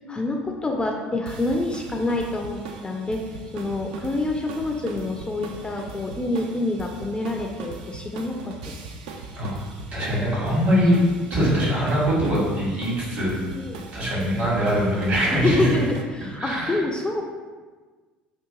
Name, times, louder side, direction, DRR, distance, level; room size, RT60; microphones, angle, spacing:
voice 1, 0.1-3.2 3.5-8.7 13.6-13.9 15.3-17.3, left 2 dB, 20° left, 2 dB, 0.3 m, -27 dB
sound 1, 1.3-16.0, right 4 dB, 70° right, 0.3 m, -39 dB
voice 2, 9.9-11.0 11.3-13.4 13.9-15.7 16.4-16.8, equal, 55° right, -7 dB, 1.2 m, -22 dB
2.8 x 2.4 x 3.7 m, 1.4 s
hypercardioid pair, 65°, 5 cm